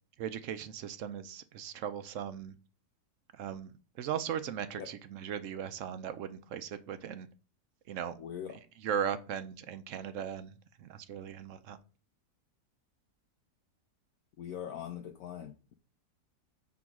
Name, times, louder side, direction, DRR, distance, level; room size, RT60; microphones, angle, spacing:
voice 1, 0.2-2.5 3.3-7.3 7.9-8.2 8.8-11.8, right 8 dB, 65° right, 0.8 m, -38 dB
voice 2, 8.2-8.6 14.4-15.7, left 9 dB, 70° left, 0.9 m, -42 dB
6.2 x 3.8 x 5.9 m
omnidirectional pair, 1.7 m